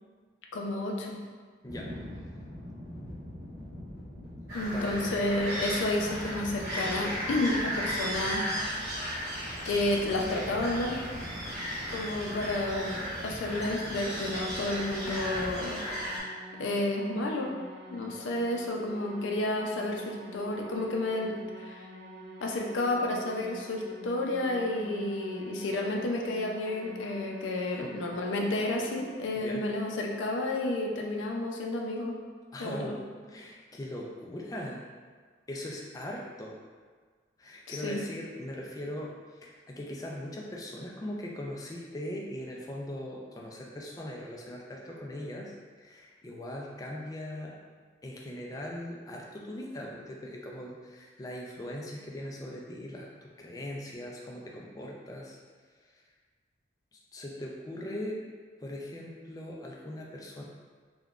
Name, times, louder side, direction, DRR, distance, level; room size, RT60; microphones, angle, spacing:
voice 1, 0.5-1.2 4.5-8.9 9.7-11.0 11.9-15.8 16.6-17.6 17.9-21.9 22.4-32.1 32.6-32.9 37.7-38.0, left 2 dB, 90° left, 0 dB, 0.4 m, -31 dB
voice 2, 1.6-2.3 4.7-5.3 27.7-28.0 29.3-29.7 32.5-33.0 33.3-34.8 35.5-36.6 37.4-47.6 48.0-55.4 55.8-56.0 56.9-58.2 58.6-60.4, left 1 dB, 20° left, -2 dB, 0.3 m, -40 dB
sound 1, 1.7-15.6, left 1 dB, ahead, 1.1 m, -44 dB
sound 2, 4.5-16.2, equal, 20° right, 1.1 m, -36 dB
sound 3, 14.5-29.1, right 1 dB, 65° right, 0.4 m, -47 dB
3.6 x 2.2 x 2.3 m, 1.5 s
head